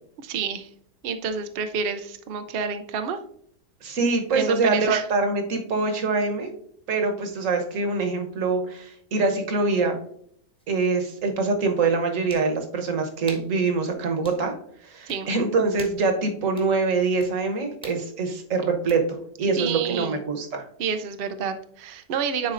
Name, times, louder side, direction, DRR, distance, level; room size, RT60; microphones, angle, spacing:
voice 1, 0.2-0.7 1.0-3.2 4.3-5.0 15.1-15.3 19.6-20.2 20.8-22.5, right 6 dB, 85° right, 8 dB, 0.5 m, -29 dB
voice 2, 3.8-6.5 6.9-10.0 10.7-14.5 14.8-19.1 19.4-20.7, right 4 dB, 55° right, 5 dB, 1.3 m, -24 dB
sound 1, 10.6-10.7 12.3-12.5 13.3-13.5 14.2-14.4 15.1-15.2 15.8-16.1 16.6-16.7 17.2-17.3 17.8-18.0 18.9-19.0, equal, 5° left, 0.9 m, -44 dB
10.0 x 4.2 x 2.5 m, 0.65 s
omnidirectional pair, 1.7 m